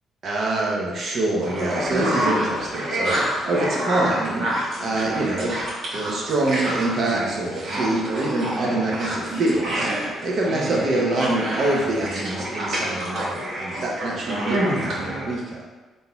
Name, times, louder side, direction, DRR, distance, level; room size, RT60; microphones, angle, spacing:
voice 1, 0.2-5.6 5.9-9.9 10.2-15.6, right 2 dB, 55° right, -3 dB, 1.0 m, -25 dB
sound 1, 1.4-15.3, right 1 dB, 70° right, 1.3 m, -27 dB
3.8 x 2.7 x 4.6 m, 1.3 s
cardioid pair, 90°, 0 cm